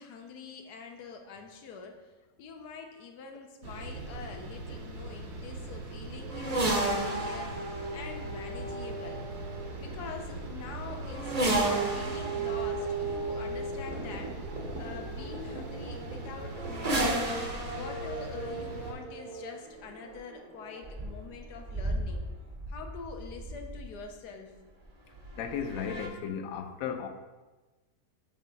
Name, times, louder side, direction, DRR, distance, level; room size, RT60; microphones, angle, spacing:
voice 1, 0.0-7.6 7.9-9.2 9.8-14.4 14.8-17.2 17.7-22.2 22.7-24.5, left 5 dB, 90° left, 3 dB, 1.3 m, -45 dB
sound 1, 3.6-18.9, right 2 dB, 75° right, 1.4 m, -41 dB
sound 2, 6.3-24.1 25.1-26.1, right 2 dB, 40° right, 0.6 m, -34 dB
voice 2, 25.3-27.1, left 7 dB, 70° left, 7 dB, 1.0 m, -35 dB
7.3 x 3.0 x 4.5 m, 1.2 s
omnidirectional pair, 1.7 m